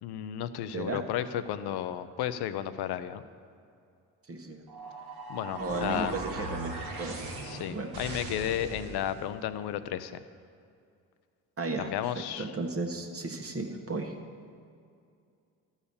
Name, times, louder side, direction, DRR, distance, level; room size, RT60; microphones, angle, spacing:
voice 1, 0.0-3.2 5.3-6.2 7.4-10.2 11.8-12.5, left 10 dB, 70° left, 12 dB, 0.6 m, -33 dB
voice 2, 4.3-4.6 5.6-6.7 7.0-7.4 7.7-7.9 11.6-11.9 12.4-14.1, right 3 dB, 35° right, 3 dB, 1.4 m, -34 dB
sound 1, 4.7-9.2, right 2 dB, 70° right, 1.8 m, -39 dB
13.0 x 4.8 x 6.9 m, 2.4 s
supercardioid pair, 55°, 40 cm